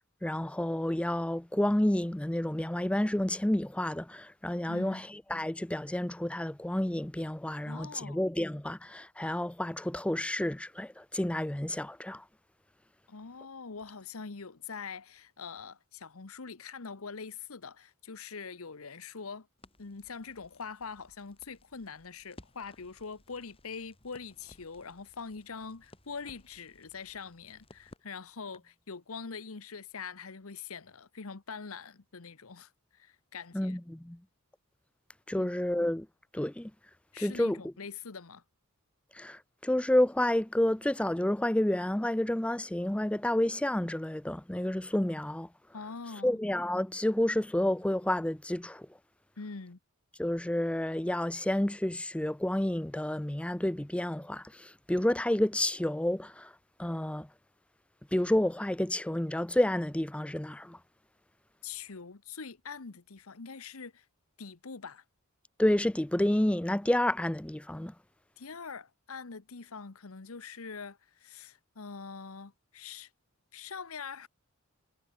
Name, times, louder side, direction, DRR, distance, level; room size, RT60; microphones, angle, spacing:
voice 1, 0.2-12.2 33.5-34.2 35.3-36.1 36.3-36.7 37.2-37.6 39.1-45.5 46.2-48.9 50.2-56.5 56.8-57.3 58.1-60.8 65.6-67.9, left 1 dB, 5° left, 0.5 m, -30 dB
voice 2, 4.7-5.0 7.7-8.2 13.1-19.5 19.8-33.8 35.4-35.5 37.1-38.4 45.7-46.3 49.4-49.8 61.6-64.1 64.4-65.0 68.4-73.1 73.5-74.3, left 5 dB, 75° left, 1.1 m, -43 dB
Crackle, 19.6-28.8, left 1 dB, 25° left, 3.6 m, -59 dB
head